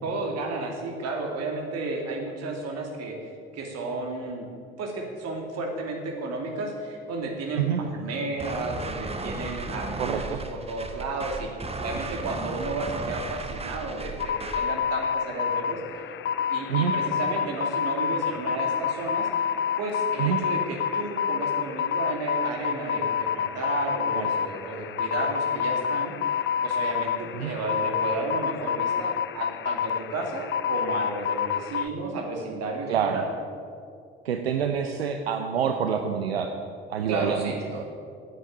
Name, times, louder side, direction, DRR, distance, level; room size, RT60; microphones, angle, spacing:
voice 1, 0.0-3.2 3.5-4.5 4.8-10.2 10.5-15.8 16.5-19.3 19.8-26.3 26.6-33.3 37.1-37.6, right 3 dB, 55° right, 1 dB, 2.6 m, -32 dB
sound 1, 8.4-14.7, right 3 dB, 20° right, 1.3 m, -35 dB
voice 2, 10.0-10.4 16.7-16.9 20.2-20.4 24.1-24.3 27.4-27.5 32.9-33.2 34.2-36.5 36.9-37.8, right 8 dB, 85° right, 5 dB, 0.7 m, -27 dB
sound 2, 14.2-31.9, left 8 dB, 40° left, 0.6 m, -28 dB
9.1 x 9.0 x 8.7 m, 2.4 s
figure-of-eight pair, 55°, 30 cm